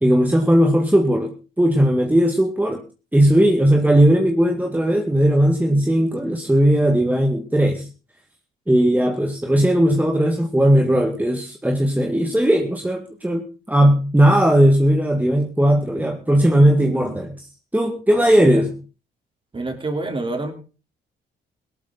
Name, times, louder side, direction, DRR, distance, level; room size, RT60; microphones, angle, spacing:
voice 1, 0.0-1.3 1.6-2.8 3.1-7.9 8.7-17.5 17.7-18.7, right 1 dB, 10° right, 3 dB, 1.9 m, -17 dB
voice 2, 18.2-18.7 19.5-20.5, right 2 dB, 25° right, 5 dB, 3.7 m, -28 dB
17.5 x 12.5 x 4.0 m, 0.35 s
cardioid pair, 90°, 20 cm